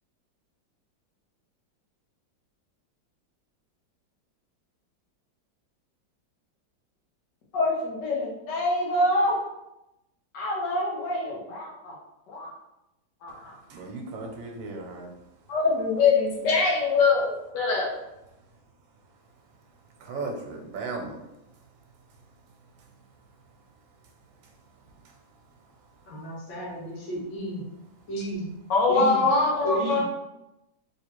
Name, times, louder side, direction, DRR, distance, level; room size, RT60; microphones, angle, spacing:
voice 1, 7.5-9.4 10.3-12.0 12.3-12.5 13.2-13.5 15.5-17.9 28.7-30.0, left 3 dB, 70° left, -2 dB, 1.5 m, -24 dB
voice 2, 13.7-15.1 20.0-21.1, right 3 dB, 85° right, 2 dB, 1.4 m, -35 dB
voice 3, 26.1-27.6 28.1-28.5 28.9-29.3 29.6-30.0, right 1 dB, 85° left, -5 dB, 2.0 m, -33 dB
3.5 x 3.1 x 2.9 m, 0.89 s
omnidirectional pair, 2.0 m